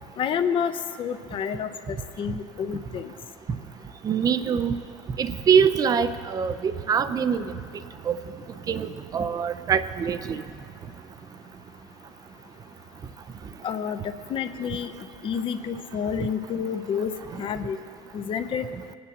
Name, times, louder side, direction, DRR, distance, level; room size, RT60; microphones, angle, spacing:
voice 1, 0.2-3.1 13.6-14.0 14.3-14.9 15.2-17.1 17.4-17.8 18.1-18.7, left 7 dB, 35° left, 9 dB, 0.6 m, -29 dB
voice 2, 4.0-4.8 5.2-7.4 8.1-8.2 8.7-10.4, right 7 dB, 25° right, 12 dB, 0.5 m, -23 dB
20.0 x 9.5 x 2.8 m, 2.4 s
supercardioid pair, 105°, 14 cm